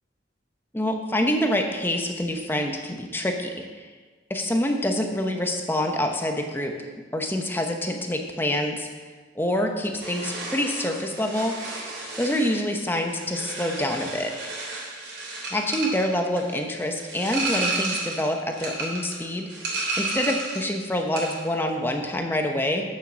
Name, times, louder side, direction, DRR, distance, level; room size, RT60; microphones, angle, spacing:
voice 1, 0.7-3.8 4.3-6.7 7.1-8.9 9.3-11.5 12.2-14.4 15.5-19.5 20.0-22.8, left 1 dB, 10° left, 3 dB, 0.9 m, -26 dB
sound 1, 10.0-20.7 21.0-21.5, right 3 dB, 65° right, 3.1 m, -32 dB
8.9 x 7.4 x 6.3 m, 1.4 s
head